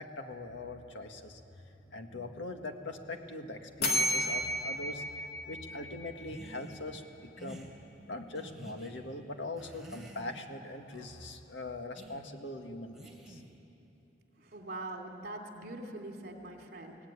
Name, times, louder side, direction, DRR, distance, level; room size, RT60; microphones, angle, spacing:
voice 1, 0.0-7.7 8.1-13.4, left 2 dB, 85° left, 5 dB, 1.9 m, -42 dB
sound 1, 3.8-6.6, equal, 55° left, 2.5 m, -33 dB
sound 2, 6.2-6.8 7.4-7.7 8.3-8.9 9.5-10.5 10.9-11.3 12.0-12.2 12.9-13.6, right 1 dB, ahead, 3.5 m, -49 dB
voice 2, 14.4-17.0, right 2 dB, 55° right, 2 dB, 2.9 m, -43 dB
23.0 x 18.0 x 9.8 m, 2.8 s
head